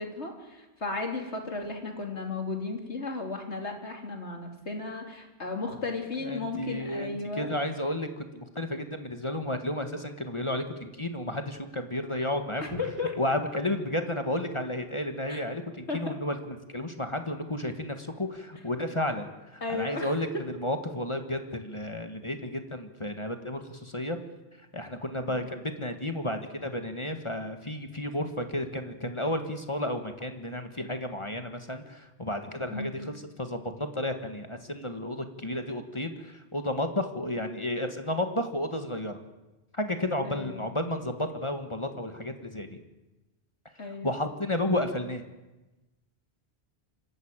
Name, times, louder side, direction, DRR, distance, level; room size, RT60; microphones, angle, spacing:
voice 1, 0.0-7.5 12.6-13.2 15.3-15.4 15.9-16.1 19.6-20.1 20.3-20.4 25.3-25.5 32.7-33.0 40.2-40.6 43.8-44.2, left 3 dB, 85° left, 3 dB, 3.5 m, -34 dB
voice 2, 6.2-12.8 13.2-24.2 24.7-39.2 39.7-42.8 44.0-45.2, left 1 dB, 25° left, 6 dB, 1.7 m, -32 dB
26.5 x 14.0 x 8.9 m, 1.1 s
omnidirectional pair, 1.1 m